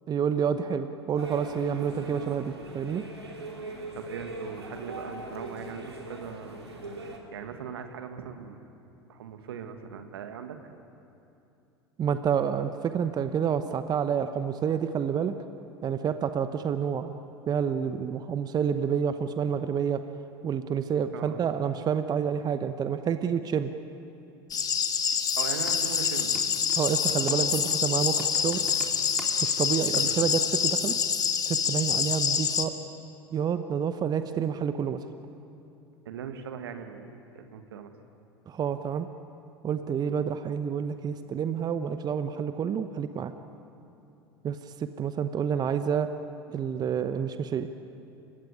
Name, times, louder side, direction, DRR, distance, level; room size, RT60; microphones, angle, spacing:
voice 1, 0.1-3.0 12.0-15.4 15.8-17.1 17.5-20.0 20.4-23.7 26.8-28.6 29.4-31.0 31.5-32.7 33.3-35.0 38.5-39.1 39.6-43.3 44.4-46.1 46.5-47.7, right 7 dB, 30° right, 10 dB, 1.0 m, -28 dB
sound 1, 1.2-7.2, right 2 dB, 85° right, 2.9 m, -41 dB
voice 2, 3.9-7.0 7.3-8.6 9.1-10.6 21.1-21.4 25.3-26.5 29.9-30.2 36.1-37.9, right 7 dB, 70° right, 7 dB, 1.8 m, -40 dB
sound 2, 24.5-32.7, left 7 dB, 30° left, 1.8 m, -26 dB
Computer keyboard, 25.0-25.2 25.7-29.7 29.9-30.1, equal, 5° right, 3.7 m, -43 dB
29.0 x 16.5 x 9.7 m, 2.8 s
figure-of-eight pair, 80°, 13 cm